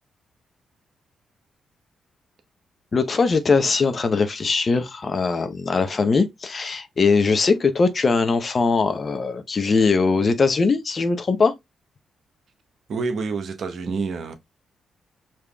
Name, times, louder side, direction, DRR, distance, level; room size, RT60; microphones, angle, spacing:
voice 1, 2.9-11.5, left 4 dB, 45° left, 0.7 m, -21 dB
voice 2, 12.9-14.3, right 4 dB, 60° right, 0.8 m, -27 dB
5.0 x 3.0 x 2.2 m
hypercardioid pair, 40°, 0 cm